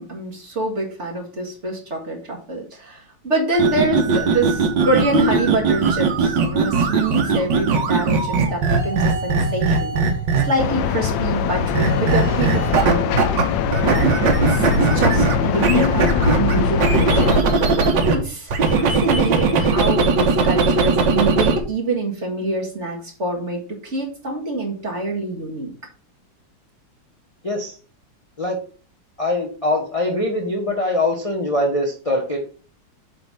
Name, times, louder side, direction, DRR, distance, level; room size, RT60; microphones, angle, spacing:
voice 1, 0.0-10.0 10.4-13.4 13.8-17.3 18.1-25.7, right 2 dB, 40° right, -1 dB, 2.1 m, -26 dB
sound 1, 3.5-10.7 11.7-13.4 13.7-18.1 18.5-21.6, right 4 dB, 70° right, 1.8 m, -19 dB
sound 2, 10.6-17.4, left 7 dB, 80° left, 1.3 m, -22 dB
voice 2, 27.4-27.8 28.4-28.6 29.2-32.4, left 1 dB, 25° left, 0 dB, 0.9 m, -22 dB
7.8 x 3.4 x 5.5 m, 0.39 s
omnidirectional pair, 2.0 m